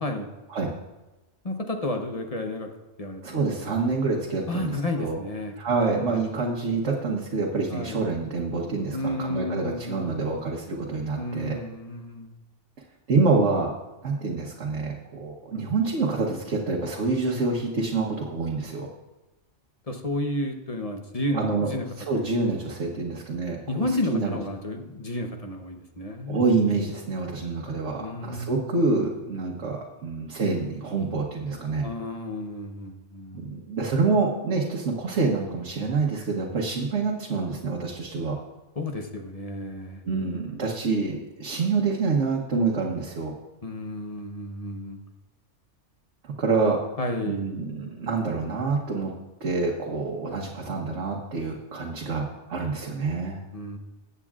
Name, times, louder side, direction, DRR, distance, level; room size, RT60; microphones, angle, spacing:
voice 1, 1.4-2.7 3.0-3.4 4.5-5.5 6.1-6.2 7.7-8.0 8.9-10.3 11.2-12.3 19.9-21.8 22.2-22.3 23.7-26.4 28.0-28.7 31.8-33.5 38.8-40.0 43.6-45.0 47.0-47.6 53.5-53.8, left 1 dB, 35° left, 4 dB, 0.9 m, -31 dB
voice 2, 3.2-5.2 5.6-11.6 13.1-13.7 14.0-18.9 21.3-21.7 22.0-24.4 26.3-31.9 33.3-38.4 40.0-43.3 46.2-46.8 47.2-49.1 49.4-53.4, right 4 dB, 75° right, -2 dB, 1.4 m, -27 dB
19.0 x 8.2 x 2.4 m, 1.1 s
omnidirectional pair, 1.2 m